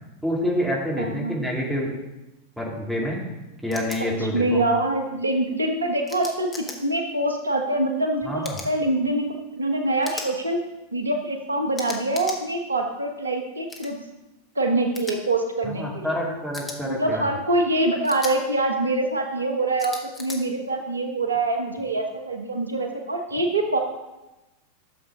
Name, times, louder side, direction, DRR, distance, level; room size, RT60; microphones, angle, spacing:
voice 1, 0.2-1.9 2.6-3.2 3.6-4.6 8.2-8.6 15.6-17.3, equal, ahead, -4 dB, 2.5 m, -27 dB
voice 2, 1.0-1.4 4.2-10.6 10.9-14.0 14.5-16.2 16.8-23.8, right 2 dB, 75° right, 4 dB, 1.1 m, -25 dB
sound 1, 3.7-4.0 6.1-6.8 8.4-8.7 10.0-10.3 11.7-12.4 13.7-13.9 14.9-15.1 16.5-16.8 18.0-18.3 19.8-20.4, left 3 dB, 15° left, 1.4 m, -36 dB
12.0 x 7.1 x 3.8 m, 1.0 s
figure-of-eight pair, 90°, 0 cm